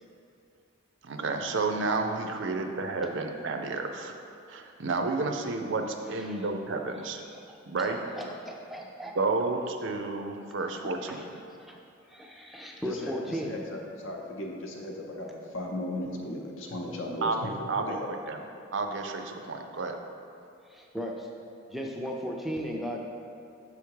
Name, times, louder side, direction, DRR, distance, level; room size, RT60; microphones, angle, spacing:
voice 1, 1.0-4.1 4.5-7.2 7.7-8.0 9.2-11.2 17.2-18.4 18.7-20.0, right 3 dB, 60° right, 5 dB, 0.5 m, -31 dB
voice 2, 6.1-6.4 7.2-9.2 10.8-11.3 11.6-11.8 12.1-13.6 20.7-21.3 21.7-23.0, equal, ahead, 0 dB, 0.4 m, -37 dB
voice 3, 12.8-13.2 13.5-18.1, left 1 dB, 70° left, 0 dB, 0.7 m, -36 dB
6.8 x 3.5 x 4.7 m, 2.5 s
head